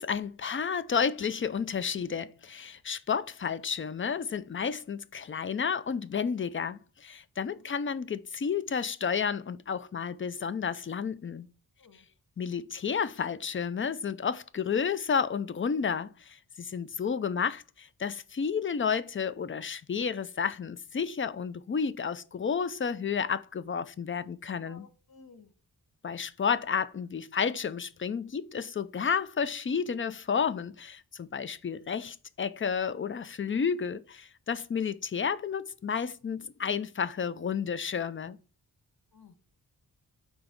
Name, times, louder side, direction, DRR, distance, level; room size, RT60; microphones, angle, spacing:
voice 1, 0.0-11.5 12.4-24.9 26.0-38.4, left 6 dB, 30° left, 0.4 m, -31 dB
voice 2, 24.5-25.5 39.1-39.3, left 4 dB, 65° left, 1.2 m, -55 dB
5.9 x 4.0 x 5.1 m
wide cardioid pair, 130°, 40 cm